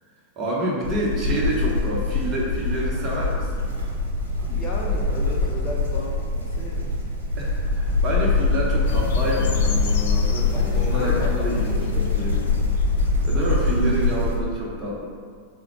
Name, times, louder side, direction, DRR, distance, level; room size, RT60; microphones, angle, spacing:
voice 1, 0.4-3.7 7.4-12.4 13.2-15.1, equal, 30° right, -4 dB, 0.9 m, -28 dB
sound 1, 0.8-14.3, left 3 dB, 75° right, 0.9 m, -23 dB
voice 2, 4.5-6.9 10.5-12.4, left 2 dB, 30° left, -2 dB, 0.6 m, -34 dB
sound 2, 8.9-13.9, left 5 dB, 60° left, 0.3 m, -34 dB
3.8 x 2.1 x 4.5 m, 2.1 s
figure-of-eight pair, 90°, 0 cm